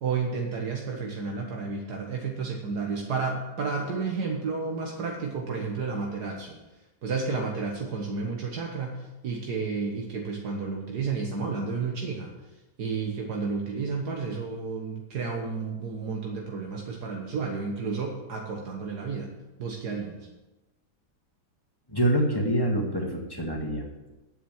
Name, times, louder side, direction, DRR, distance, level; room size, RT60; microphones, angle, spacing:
voice 1, 0.0-6.6 7.0-12.3 12.8-19.3 19.6-20.2, right 4 dB, 75° right, 0 dB, 1.9 m, -31 dB
voice 2, 21.9-24.1, right 1 dB, 15° left, 0 dB, 1.8 m, -26 dB
9.3 x 7.3 x 8.9 m, 1.1 s
omnidirectional pair, 1.7 m